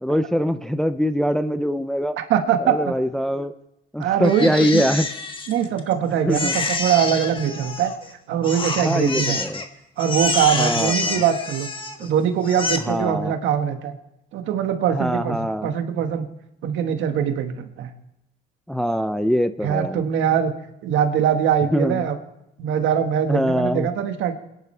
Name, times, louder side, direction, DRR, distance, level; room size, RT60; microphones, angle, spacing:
voice 1, 0.0-2.2 2.6-3.5 3.9-5.1 6.3-6.5 8.8-9.6 10.6-11.2 12.9-13.3 14.9-15.7 18.7-20.0 21.7-22.1 23.3-23.9, equal, ahead, 10 dB, 0.5 m, -23 dB
voice 2, 2.2-2.9 4.0-4.8 5.5-7.9 8.3-9.4 10.0-11.7 12.0-14.0 14.3-16.3 16.6-17.9 19.6-20.5 20.8-22.2 22.6-24.3, right 8 dB, 70° right, 6 dB, 1.6 m, -22 dB
Crying sobbing, 4.2-5.9 6.3-8.1 8.4-9.7 10.0-12.1 12.4-12.8, left 3 dB, 25° left, 1.4 m, -27 dB
28.5 x 10.5 x 3.3 m, 0.86 s
cardioid pair, 105°, 21 cm